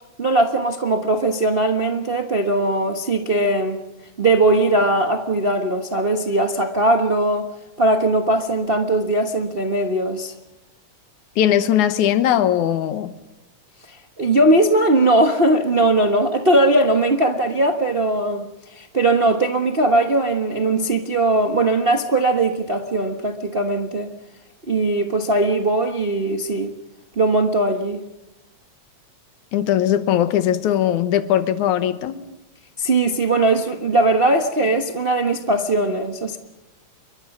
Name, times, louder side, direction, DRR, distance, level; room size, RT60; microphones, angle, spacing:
voice 1, 0.2-3.8 4.2-7.5 7.8-10.3 13.9-24.1 24.7-26.7 27.2-28.0 32.8-36.4, right 2 dB, 65° right, 0.5 m, -19 dB
voice 2, 11.4-13.1 29.5-32.2, left 10 dB, 85° left, 2.6 m, -19 dB
28.0 x 23.5 x 6.0 m
omnidirectional pair, 3.3 m